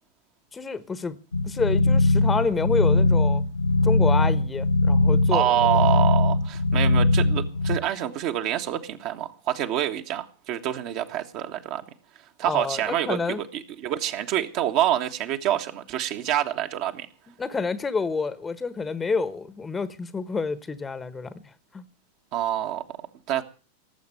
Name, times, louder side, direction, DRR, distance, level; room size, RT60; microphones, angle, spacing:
voice 1, 0.5-1.2 1.4-3.4 3.8-5.5 12.4-13.4 17.4-21.3 21.7-21.8, left 4 dB, 15° left, 1.3 m, -28 dB
sound 1, 1.3-7.8, left 2 dB, 75° left, 0.8 m, -21 dB
voice 2, 5.3-11.8 12.4-17.1 22.3-22.8 23.3-23.4, right 12 dB, 40° right, 1.6 m, -26 dB
18.5 x 8.0 x 9.2 m
figure-of-eight pair, 90°, 0 cm